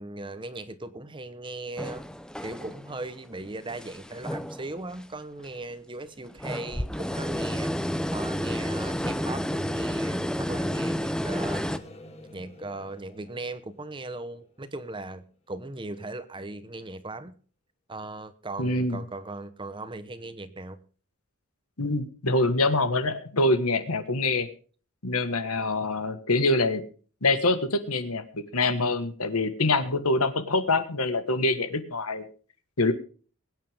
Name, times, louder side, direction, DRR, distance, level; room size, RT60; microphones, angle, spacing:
voice 1, 0.0-2.0 2.4-7.7 8.1-11.6 12.3-17.3 17.9-20.8, right 2 dB, 20° right, 12 dB, 1.0 m, -38 dB
sound 1, 1.8-3.0 3.4-5.0 5.4-5.5 6.3-11.8, equal, 5° left, 0.6 m, -31 dB
sound 2, 11.3-15.3, left 1 dB, 30° left, 2.1 m, -49 dB
voice 2, 18.6-19.0 21.8-24.5 25.0-26.8 27.2-32.2 32.8-32.9, left 2 dB, 80° left, 11 dB, 1.6 m, -25 dB
22.0 x 9.4 x 3.5 m, 0.40 s
head